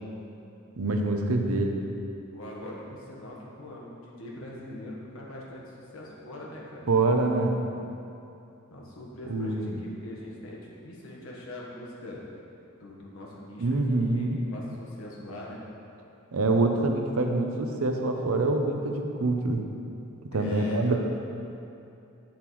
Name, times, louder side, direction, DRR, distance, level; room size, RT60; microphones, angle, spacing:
voice 1, 0.8-1.8 6.9-7.6 9.3-9.8 13.6-14.4 16.3-19.6 20.3-21.0, right 2 dB, 80° right, 3 dB, 0.7 m, -25 dB
voice 2, 2.3-6.9 8.7-12.2 12.8-15.6 20.3-21.0, left 1 dB, 70° left, -3 dB, 1.3 m, -41 dB
7.9 x 7.1 x 3.1 m, 2.7 s
head